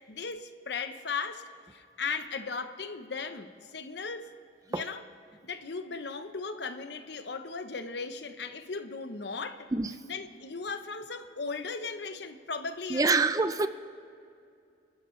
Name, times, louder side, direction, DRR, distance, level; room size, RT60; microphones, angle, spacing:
voice 1, 0.1-4.3 4.7-5.0 5.4-9.7 10.0-13.2, left 4 dB, 65° left, 10 dB, 0.8 m, -37 dB
voice 2, 12.9-13.7, right 3 dB, 20° right, 11 dB, 0.4 m, -25 dB
28.5 x 12.5 x 3.2 m, 2.4 s
head